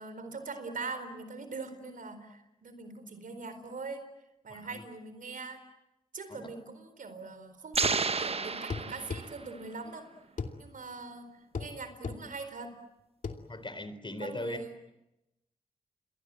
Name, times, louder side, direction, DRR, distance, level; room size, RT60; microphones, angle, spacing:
voice 1, 0.0-4.0 4.4-5.6 6.1-10.1 10.6-11.3 11.6-12.8 14.2-14.7, right 4 dB, 65° right, 10 dB, 4.4 m, -42 dB
voice 2, 4.5-4.8 6.3-6.5 13.5-14.6, left 2 dB, 35° left, 12 dB, 4.0 m, -39 dB
sound 1, 7.7-9.6, right 4 dB, 40° right, 1.1 m, -31 dB
sound 2, 7.8-8.0 8.7-9.3 10.4-10.6 11.5-11.7 12.0-12.2 13.2-13.4, left 5 dB, 60° left, 2.7 m, -35 dB
29.5 x 22.5 x 7.7 m, 0.90 s
cardioid pair, 45°, 15 cm